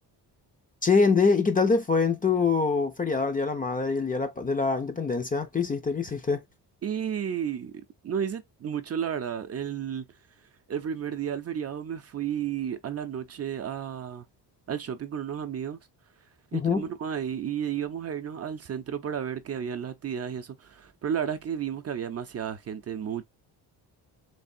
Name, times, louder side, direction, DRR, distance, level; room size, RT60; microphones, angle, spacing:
voice 1, 0.8-6.4 16.5-16.8, left 4 dB, 20° left, 0.5 m, -24 dB
voice 2, 6.8-7.7 8.0-10.1 10.7-14.3 14.7-15.8 16.5-23.2, right 8 dB, 35° right, 0.5 m, -32 dB
3.5 x 3.3 x 2.6 m
cardioid pair, 115°, 40 cm